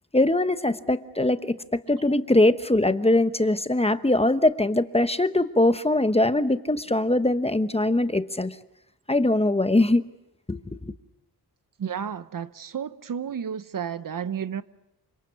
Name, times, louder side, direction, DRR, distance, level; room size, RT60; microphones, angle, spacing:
voice 1, 0.1-8.6 9.1-10.0 10.5-10.9, left 1 dB, 15° left, 0.9 m, -22 dB
voice 2, 11.8-14.6, right 8 dB, 50° right, 0.9 m, -32 dB
28.0 x 25.5 x 7.0 m
wide cardioid pair, 100°, 40 cm